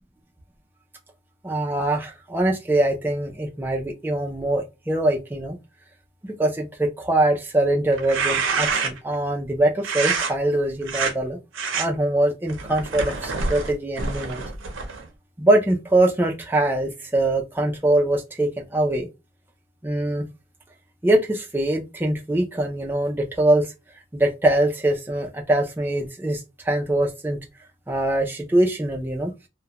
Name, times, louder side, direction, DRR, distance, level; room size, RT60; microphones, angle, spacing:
voice 1, 1.4-5.6 6.4-11.4 11.7-14.4 15.4-19.1 19.8-20.2 21.0-23.7 24.1-27.4 27.9-29.3, right 1 dB, 10° right, 0.3 m, -23 dB
sound 1, 7.9-9.1 9.8-10.3 10.8-11.1 11.5-11.9 12.5-15.1, right 4 dB, 80° right, 0.6 m, -26 dB
2.3 x 2.1 x 2.8 m
head